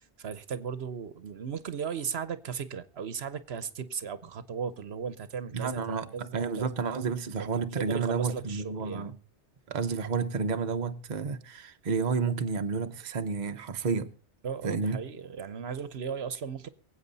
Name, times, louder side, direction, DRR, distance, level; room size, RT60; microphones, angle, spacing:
voice 1, 0.0-6.7 7.3-9.1 14.4-16.7, right 6 dB, 65° right, 1.1 m, -36 dB
voice 2, 5.5-9.1 9.7-14.1 14.6-15.0, right 5 dB, 45° right, 0.8 m, -31 dB
23.5 x 8.2 x 4.0 m
omnidirectional pair, 1.2 m